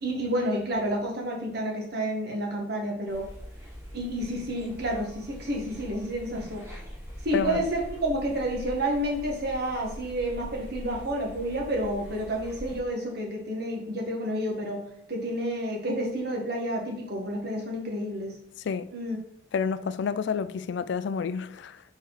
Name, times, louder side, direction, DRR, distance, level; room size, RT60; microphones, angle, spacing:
voice 1, 0.0-3.3 3.9-6.6 7.2-14.8 15.1-18.3 18.9-19.2, right 1 dB, 60° right, 1.6 m, -30 dB
sound 1, 3.1-12.8, equal, 15° right, 2.1 m, -43 dB
voice 2, 19.5-21.8, left 6 dB, 65° left, 0.3 m, -29 dB
4.6 x 4.4 x 4.9 m
head